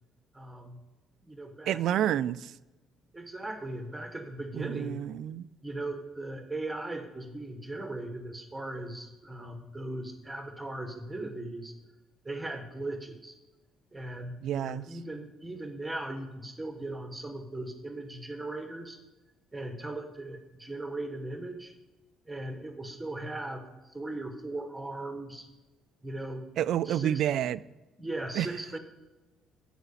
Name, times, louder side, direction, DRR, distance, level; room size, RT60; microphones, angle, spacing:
voice 1, 0.3-0.8 1.3-2.1 3.1-5.0 5.6-11.7 12.2-13.3 13.9-19.0 19.5-21.7 22.3-23.6 23.9-25.5 26.0-26.4 26.8-27.2 28.0-28.8, right 2 dB, 5° right, 1.1 m, -38 dB
voice 2, 1.7-2.5 4.5-5.5 14.4-14.9 26.6-27.6 28.4-28.5, right 11 dB, 55° right, 0.4 m, -29 dB
13.5 x 5.0 x 8.4 m
cardioid pair, 170°, 0 cm